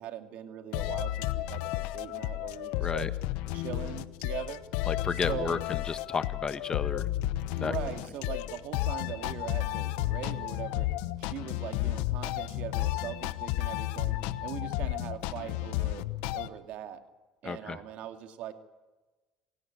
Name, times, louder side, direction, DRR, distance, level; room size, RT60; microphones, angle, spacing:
voice 1, 0.0-3.1 3.5-4.6 5.3-5.6 7.6-10.9 11.2-16.1 16.3-17.0 17.4-18.5, right 11 dB, 70° right, 7 dB, 2.5 m, -41 dB
sound 1, 0.7-16.5, left 16 dB, 85° left, 1.0 m, -32 dB
voice 2, 2.8-3.1 4.9-7.1 7.6-7.7 17.4-17.8, left 5 dB, 30° left, 12 dB, 1.4 m, -32 dB
26.5 x 17.0 x 9.0 m, 1.2 s
supercardioid pair, 95°, 2 cm